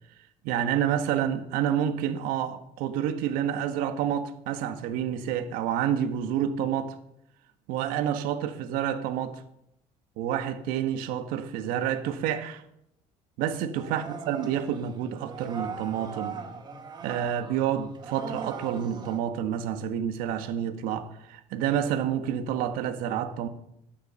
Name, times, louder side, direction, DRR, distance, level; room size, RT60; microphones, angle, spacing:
voice 1, 0.4-7.0 7.7-9.4 10.2-12.6 13.4-16.4 17.0-23.5, right 9 dB, 80° right, 1.5 m, -29 dB
sound 1, 13.7-19.2, right 5 dB, 30° right, 1.8 m, -40 dB
13.0 x 10.5 x 7.0 m
cardioid pair, 150°, 14 cm